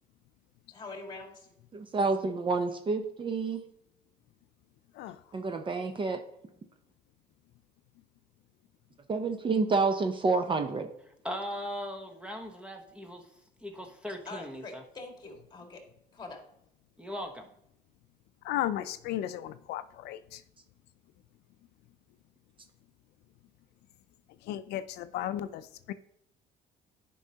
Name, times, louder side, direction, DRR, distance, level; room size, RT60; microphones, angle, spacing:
voice 1, 0.7-1.5 14.3-15.8 16.1-16.4, left 3 dB, 25° left, 2 dB, 1.9 m, -44 dB
voice 2, 1.7-3.6 5.3-6.2 9.1-10.9, right 4 dB, 30° right, 7 dB, 0.6 m, -28 dB
voice 3, 11.2-13.3 13.6-14.8 17.0-17.5, equal, 5° right, 4 dB, 0.9 m, -39 dB
voice 4, 18.4-20.4 24.4-25.9, left 12 dB, 75° left, 12 dB, 0.4 m, -35 dB
9.5 x 5.4 x 2.8 m, 0.78 s
cardioid pair, 110°, 17 cm